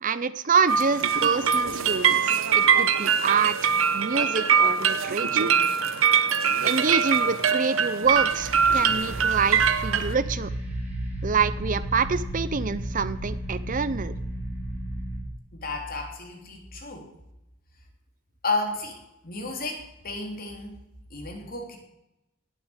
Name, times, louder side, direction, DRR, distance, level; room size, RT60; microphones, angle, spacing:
voice 1, 0.0-2.2 2.5-5.5 6.6-10.5 11.2-14.1, right 5 dB, 40° right, 15 dB, 0.6 m, -26 dB
sound 1, 0.7-10.1, right 7 dB, 75° right, 1.1 m, -23 dB
sound 2, 8.0-15.2, right 1 dB, 10° right, 3.9 m, -33 dB
voice 2, 15.5-17.1 18.4-20.8 21.1-21.8, left 3 dB, 45° left, 2 dB, 3.5 m, -32 dB
18.5 x 7.9 x 8.1 m, 0.92 s
head